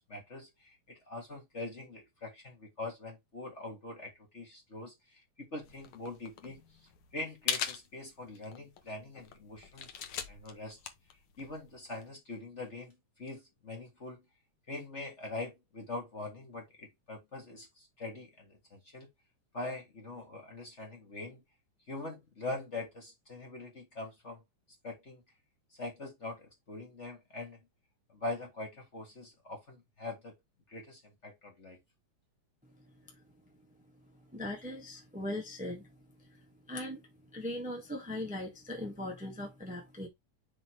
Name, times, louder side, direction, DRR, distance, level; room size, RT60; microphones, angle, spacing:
voice 1, 0.0-6.6 7.1-10.8 11.4-14.2 14.7-19.1 19.5-21.4 21.9-24.4 24.8-25.2 25.8-27.6 28.1-30.3 30.7-31.8, left 2 dB, 30° left, 1.5 m, -43 dB
sound 1, 5.6-12.1, left 8 dB, 75° left, 1.2 m, -41 dB
voice 2, 34.3-35.9 36.7-37.0 37.3-40.1, left 1 dB, 10° right, 0.5 m, -39 dB
5.8 x 3.8 x 4.6 m
omnidirectional pair, 3.7 m